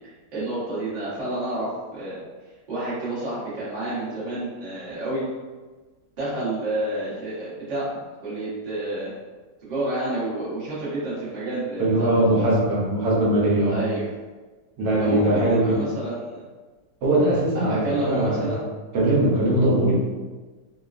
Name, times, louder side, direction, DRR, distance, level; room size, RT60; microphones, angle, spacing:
voice 1, 0.3-2.2 2.7-5.2 6.2-7.8 8.2-9.1 9.6-12.2 13.7-14.0 15.0-16.4 17.5-18.6, right 2 dB, 35° right, -10 dB, 0.9 m, -29 dB
voice 2, 11.8-13.8 14.8-15.9 17.0-18.6 18.9-20.0, right 1 dB, 80° right, -4 dB, 1.3 m, -21 dB
3.1 x 2.2 x 2.4 m, 1.3 s
omnidirectional pair, 1.9 m